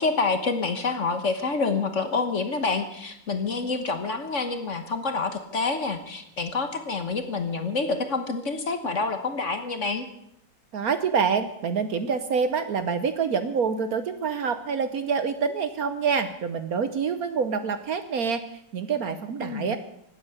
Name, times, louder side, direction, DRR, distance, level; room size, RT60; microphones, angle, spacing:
voice 1, 0.0-10.1 19.4-19.8, left 4 dB, 45° left, 8 dB, 1.4 m, -27 dB
voice 2, 10.7-19.8, right 6 dB, 60° right, 11 dB, 1.2 m, -26 dB
16.5 x 9.3 x 8.1 m, 0.77 s
omnidirectional pair, 2.0 m